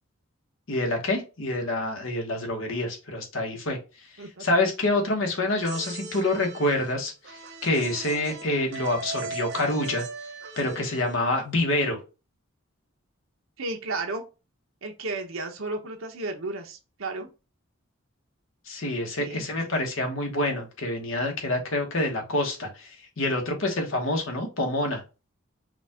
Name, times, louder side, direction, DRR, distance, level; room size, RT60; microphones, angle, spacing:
voice 1, 0.7-3.8 4.4-10.0 10.6-12.0 18.7-25.0, left 1 dB, 75° left, 3 dB, 1.3 m, -27 dB
sound 1, 5.5-11.4, right 3 dB, 55° right, 0.9 m, -39 dB
voice 2, 13.6-14.2 14.8-17.3 19.2-19.7, right 2 dB, 80° right, 3 dB, 1.0 m, -33 dB
5.0 x 2.5 x 3.6 m, 0.29 s
head